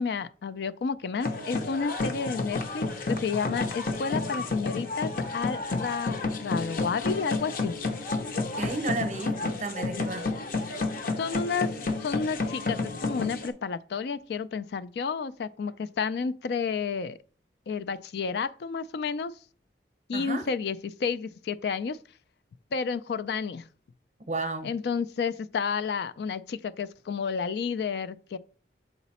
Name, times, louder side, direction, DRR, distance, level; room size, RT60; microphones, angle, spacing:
voice 1, 0.0-7.7 9.5-9.6 11.2-11.7 12.0-17.2 17.7-19.3 20.1-22.0 22.7-23.6 24.6-28.4, left 5 dB, 70° left, 0.3 m, -31 dB
sound 1, 1.2-13.5, left 3 dB, 50° left, 0.8 m, -31 dB
voice 2, 8.4-10.3 20.1-20.4 24.3-24.7, right 2 dB, 40° right, 0.7 m, -32 dB
7.0 x 4.0 x 4.2 m
head